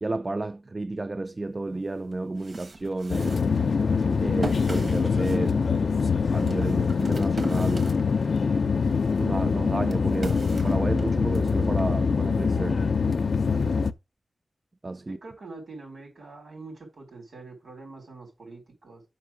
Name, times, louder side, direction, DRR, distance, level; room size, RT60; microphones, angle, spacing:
voice 1, 0.0-3.5 4.2-5.6 6.3-8.0 9.2-12.8 14.8-15.2, right 2 dB, 30° right, 0.4 m, -32 dB
sound 1, 1.6-1.7 2.1-8.5 8.9-11.5, right 2 dB, 60° right, 1.2 m, -39 dB
sound 2, 3.1-13.9, left 5 dB, 75° left, 0.5 m, -24 dB
voice 2, 15.1-19.0, right 3 dB, 85° right, 4.5 m, -44 dB
5.9 x 5.8 x 6.1 m
wide cardioid pair, 120°, 0 cm